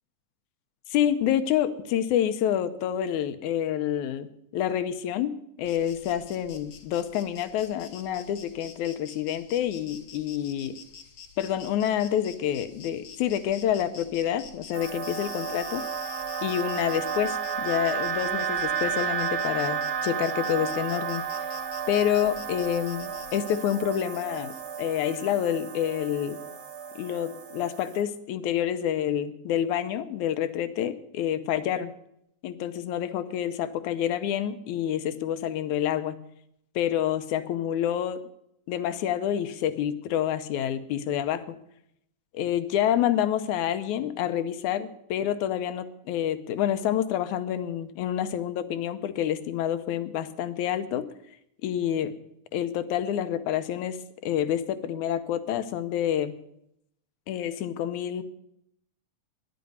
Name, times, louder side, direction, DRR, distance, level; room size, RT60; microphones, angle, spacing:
voice 1, 0.9-5.3 5.6-10.8 11.4-15.8 16.4-21.2 21.9-26.4 27.0-31.9 32.4-36.2 36.8-38.2 38.7-41.6 42.3-51.0 51.6-52.1 52.5-56.4 57.3-58.2, left 10 dB, 75° left, 12 dB, 2.1 m, -28 dB
Insect, 5.6-24.8, left 6 dB, 60° left, 1.3 m, -47 dB
sound 1, 14.7-28.0, right 7 dB, 50° right, 1.9 m, -32 dB
11.0 x 9.4 x 9.3 m, 0.76 s
omnidirectional pair, 3.7 m